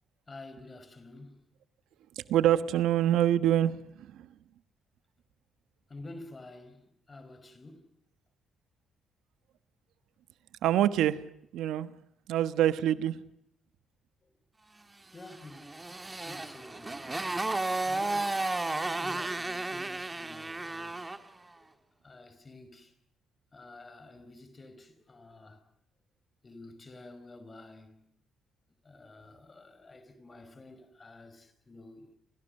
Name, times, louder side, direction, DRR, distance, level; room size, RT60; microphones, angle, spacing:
voice 1, 0.3-1.4 5.9-7.9 14.2-14.3 15.1-17.1 17.8-18.4 18.8-21.7 22.0-22.9 23.5-25.6 26.4-28.1 28.8-32.1, left 2 dB, 30° left, 5.1 m, -50 dB
voice 2, 2.1-4.3 10.6-11.2 11.5-11.9 12.3-13.2, right 11 dB, 85° right, 1.2 m, -26 dB
Motorcycle, 15.2-21.3, right 2 dB, 20° right, 2.0 m, -33 dB
30.0 x 27.0 x 6.6 m
cardioid pair, 90°, 0 cm